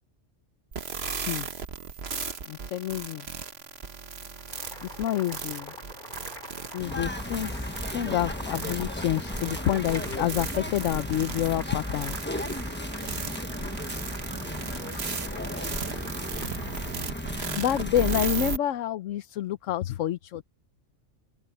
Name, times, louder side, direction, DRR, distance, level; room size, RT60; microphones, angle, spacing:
sound 1, 0.7-18.6, right 5 dB, 55° right, 1.5 m, -36 dB
voice 1, 2.5-3.3 4.8-5.7 6.7-12.2 17.6-20.4, left 12 dB, 80° left, 1.0 m, -28 dB
Boiling, 4.3-18.4, left 1 dB, 40° left, 4.8 m, -45 dB
sound 2, 6.8-18.3, left 1 dB, 10° left, 1.2 m, -35 dB
voice 2, 14.7-16.1 17.2-17.6, left 1 dB, 55° left, 4.0 m, -53 dB
open air
omnidirectional pair, 1.3 m